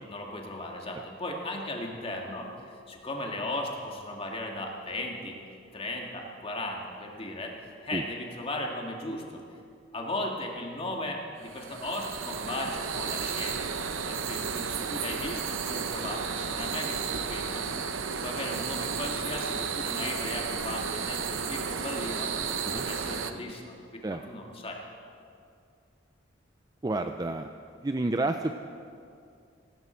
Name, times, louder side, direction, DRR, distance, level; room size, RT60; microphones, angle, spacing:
voice 1, 0.1-5.4 5.7-7.6 7.8-9.4 9.9-13.7 14.1-17.6 18.2-22.3 22.6-24.8, left 1 dB, 30° left, 0 dB, 2.0 m, -36 dB
sound 1, 11.4-23.3, right 6 dB, 75° right, 0.8 m, -33 dB
voice 2, 26.8-27.5 27.8-28.5, right 2 dB, 20° right, 7 dB, 0.4 m, -29 dB
17.5 x 17.0 x 4.5 m, 2.4 s
head